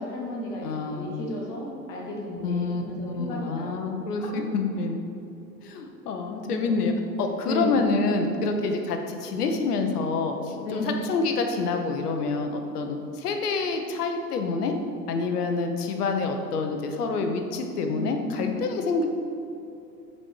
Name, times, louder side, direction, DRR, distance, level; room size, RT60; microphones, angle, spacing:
voice 1, 0.0-4.4 6.6-6.8 7.4-7.8 10.6-10.9 17.9-18.6, left 1 dB, 10° left, -3 dB, 0.3 m, -34 dB
voice 2, 0.6-1.1 2.4-5.0 5.6-14.7 15.1-19.1, left 4 dB, 65° left, 5 dB, 1.1 m, -27 dB
7.6 x 4.5 x 4.7 m, 2.6 s
hypercardioid pair, 105°, 49 cm